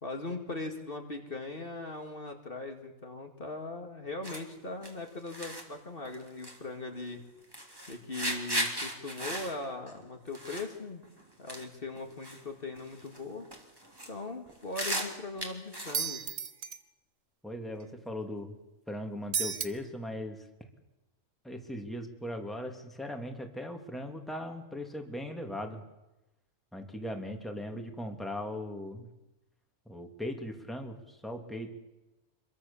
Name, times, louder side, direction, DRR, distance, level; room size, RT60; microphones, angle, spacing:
voice 1, 0.0-7.2 7.9-11.0 11.4-13.5 14.1-16.2, left 2 dB, 45° left, 4 dB, 2.3 m, -40 dB
Walking on dusty floor, 4.2-4.4 4.8-4.9 5.3-5.6 6.0-6.6 6.9-7.1 7.5-10.7 11.0-11.2 11.5-11.7 11.9-12.4 12.7-13.2 13.4-14.1 14.5-16.0, equal, 15° right, 3.1 m, -36 dB
sound 1, 15.9-16.8 19.3-19.7, right 6 dB, 75° right, 1.6 m, -32 dB
voice 2, 17.4-18.5 18.9-20.5 21.4-25.8 26.7-29.1 29.9-31.7, left 1 dB, ahead, 3 dB, 2.7 m, -39 dB
26.5 x 23.0 x 7.2 m, 0.97 s
omnidirectional pair, 1.3 m